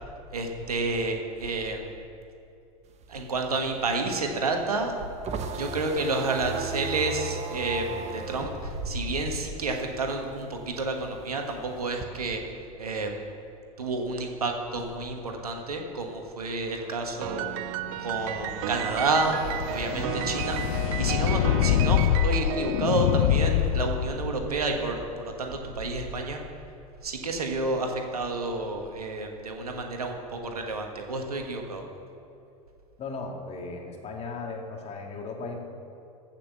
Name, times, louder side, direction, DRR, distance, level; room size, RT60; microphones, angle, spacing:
voice 1, 0.3-2.0 3.1-4.9 5.6-12.4 12.8-13.2 13.8-17.4 18.0-19.4 19.6-26.4 27.0-31.8, right 3 dB, 90° right, 3 dB, 1.5 m, -30 dB
sound 1, 2.9-10.0 10.3-12.1, right 3 dB, 35° right, 1.2 m, -36 dB
Piano, 17.2-23.7, right 15 dB, 65° right, 0.5 m, -34 dB
sound 2, 18.1-24.5, left 12 dB, 70° left, 0.4 m, -26 dB
voice 2, 33.0-35.6, left 3 dB, 35° left, 1 dB, 2.2 m, -36 dB
14.5 x 5.9 x 6.9 m, 2.7 s
hypercardioid pair, 90°, 19 cm